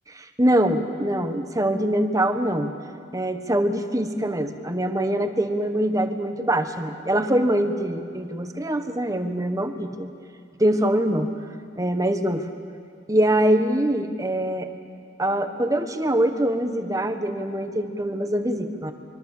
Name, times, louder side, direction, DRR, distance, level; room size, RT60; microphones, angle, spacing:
voice 1, 0.2-2.7 3.1-10.1 10.6-11.3 11.8-12.5 13.1-14.7 15.2-18.9, right 1 dB, 20° right, 7 dB, 1.3 m, -23 dB
26.0 x 24.0 x 7.4 m, 2.4 s
head